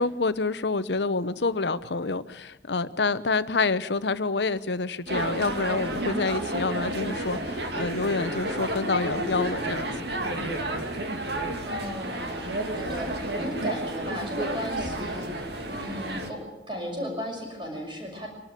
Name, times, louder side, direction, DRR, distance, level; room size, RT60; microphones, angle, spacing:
voice 1, 0.0-9.9 10.4-10.6, left 3 dB, 70° left, 15 dB, 0.9 m, -27 dB
sound 1, 5.1-16.3, right 1 dB, 65° right, 2.5 m, -31 dB
voice 2, 11.7-16.4 16.7-18.3, equal, 25° right, 0 dB, 6.2 m, -35 dB
24.5 x 12.5 x 9.2 m, 1.0 s
head